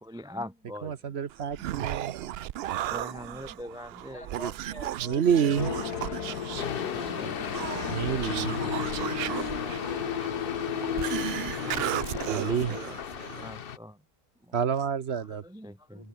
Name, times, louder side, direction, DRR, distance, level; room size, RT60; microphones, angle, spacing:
voice 1, 0.0-0.9 1.7-2.1 2.6-4.3 7.2-7.5 11.2-13.0 13.4-14.0 15.3-16.1, left 1 dB, 5° right, 0.3 m, -44 dB
voice 2, 0.8-2.1 5.0-5.7 7.9-8.6 12.3-12.8 14.5-15.4, right 7 dB, 50° right, 1.0 m, -28 dB
Human voice, 1.3-13.5, right 12 dB, 90° right, 0.5 m, -35 dB
voice 3, 4.0-5.9 9.2-9.8 15.9-16.1, left 1 dB, 20° left, 5.8 m, -45 dB
sound 1, 5.6-12.8, left 7 dB, 90° left, 2.1 m, -36 dB
sound 2, 6.6-13.8, left 8 dB, 45° left, 0.9 m, -35 dB
omnidirectional pair, 1.6 m